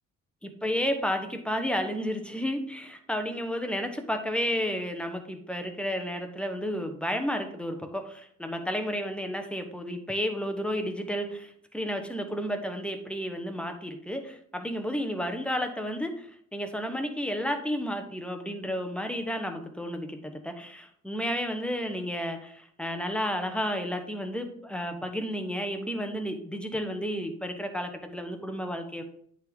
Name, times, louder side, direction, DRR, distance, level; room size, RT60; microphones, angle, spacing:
voice 1, 0.4-29.0, equal, 5° left, 5 dB, 1.0 m, -32 dB
8.8 x 3.9 x 3.6 m, 0.63 s
cardioid pair, 90°, 30 cm